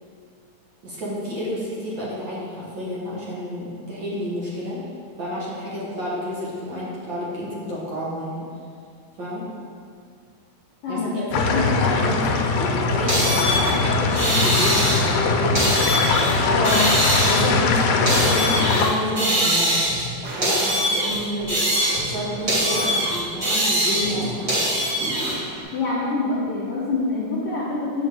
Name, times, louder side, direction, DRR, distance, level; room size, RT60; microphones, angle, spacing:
voice 1, 0.8-4.8 5.2-8.5 9.2-9.5 10.9-11.0 11.3-16.6 17.2-19.8 20.4-24.6, equal, 55° right, -6 dB, 1.3 m, -29 dB
voice 2, 10.8-11.6 16.5-16.8 25.7-28.1, left 3 dB, 65° left, -6 dB, 1.6 m, -25 dB
sound 1, 11.3-18.9, left 4 dB, 80° left, 2.1 m, -21 dB
sound 2, 13.1-15.2 15.5-16.3 16.6-18.9 19.2-20.1 20.4-22.2 22.5-25.3, right 1 dB, 35° right, 1.9 m, -22 dB
sound 3, 20.2-25.6, right 2 dB, 85° right, 2.9 m, -36 dB
7.8 x 6.3 x 3.5 m, 2.2 s
omnidirectional pair, 3.7 m